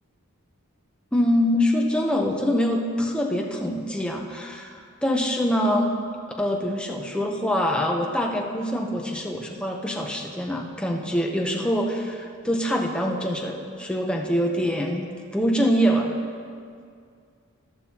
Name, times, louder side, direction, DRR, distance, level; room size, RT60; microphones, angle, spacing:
voice 1, 1.1-5.9 6.4-16.1, equal, 5° left, 0 dB, 0.7 m, -24 dB
14.0 x 11.0 x 2.9 m, 2.2 s
head